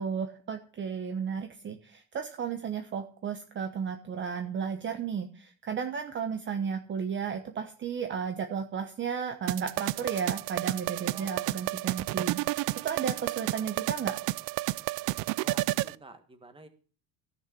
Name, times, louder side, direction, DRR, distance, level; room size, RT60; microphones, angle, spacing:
voice 1, 0.0-14.2, right 6 dB, 30° right, 6 dB, 1.1 m, -34 dB
sound 1, 9.5-15.9, right 19 dB, 60° right, 0.5 m, -31 dB
voice 2, 11.0-11.5 15.4-16.7, right 2 dB, 15° right, 8 dB, 1.6 m, -50 dB
15.0 x 6.6 x 7.7 m, 0.40 s
cardioid pair, 160°, 41 cm